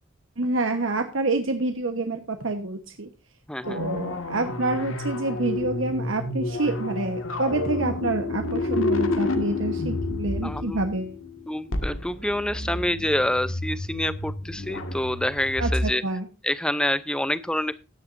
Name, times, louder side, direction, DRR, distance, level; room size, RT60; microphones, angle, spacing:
voice 1, 0.4-3.1 3.7-11.1 15.6-16.3, right 2 dB, 75° right, 5 dB, 1.2 m, -27 dB
voice 2, 3.5-3.8 10.4-10.9 11.5-16.0 16.4-17.8, left 1 dB, 5° left, 14 dB, 0.6 m, -27 dB
sound 1, 3.6-15.9, left 2 dB, 85° left, 1.9 m, -30 dB
15.5 x 10.5 x 2.6 m, 0.30 s
head